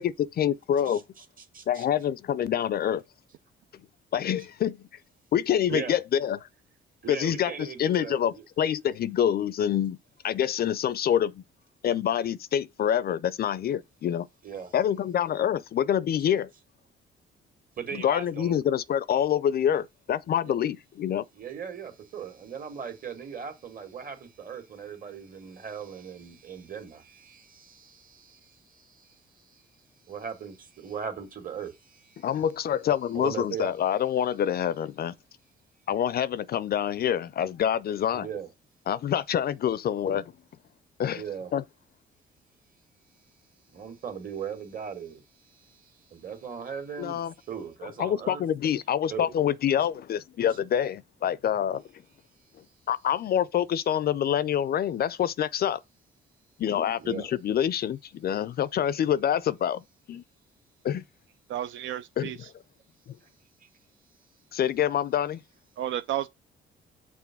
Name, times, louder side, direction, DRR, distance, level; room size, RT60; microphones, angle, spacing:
voice 1, 0.0-1.0 1.7-3.0 4.1-4.8 5.3-6.4 7.1-10.0 10.2-11.4 11.8-14.3 14.7-16.5 17.9-21.2 32.2-35.1 35.9-38.3 38.9-40.3 41.0-41.2 41.5-41.6 47.0-47.3 48.0-51.8 52.9-55.8 56.6-59.8 60.1-60.2 60.8-61.0 62.2-62.3 63.1-63.2 64.5-65.4, left 9 dB, 50° left, 0.4 m, -26 dB
voice 2, 0.9-1.8 5.7-6.0 7.0-8.4 14.4-14.7 17.8-18.6 20.4-20.6 21.3-29.6 30.1-32.3 33.1-33.7 38.1-38.5 41.2-41.5 43.7-48.4 49.1-49.3 57.0-57.3 63.6-63.7, right 7 dB, 45° right, 1.9 m, -39 dB
voice 3, 61.5-62.5 65.8-66.3, right 12 dB, 75° right, 0.4 m, -32 dB
6.1 x 3.7 x 5.9 m
cardioid pair, 90°, 20 cm